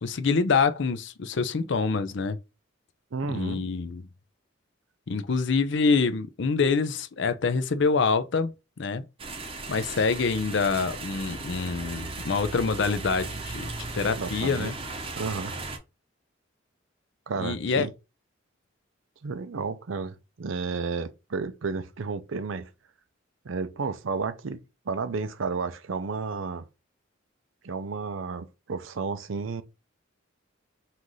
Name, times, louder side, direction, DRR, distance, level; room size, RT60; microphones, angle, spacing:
voice 1, 0.0-2.4 3.3-4.1 5.1-9.0 9.7-14.7 17.4-17.9, left 4 dB, 60° left, 0.5 m, -26 dB
voice 2, 3.1-3.6 14.2-14.7 15.2-15.5 17.3-17.9 19.2-22.7 23.4-26.6 27.6-29.6, right 4 dB, 75° right, 0.6 m, -32 dB
sound 1, 9.2-15.8, right 3 dB, 30° right, 0.8 m, -37 dB
5.6 x 2.6 x 3.1 m
head